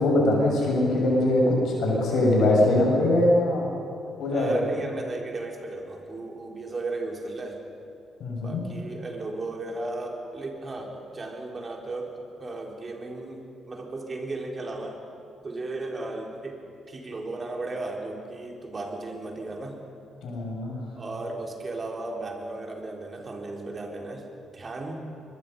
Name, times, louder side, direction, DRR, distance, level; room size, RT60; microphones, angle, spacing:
voice 1, 0.0-3.7 4.2-4.6 8.2-8.6 20.2-20.8, left 1 dB, 65° left, -1 dB, 6.7 m, -22 dB
voice 2, 4.3-7.6 8.4-12.1 12.4-15.0 15.4-19.8 20.9-24.3 24.5-25.0, right 2 dB, 40° right, 1 dB, 4.1 m, -35 dB
24.0 x 22.0 x 5.5 m, 2.5 s
hypercardioid pair, 45°, 0 cm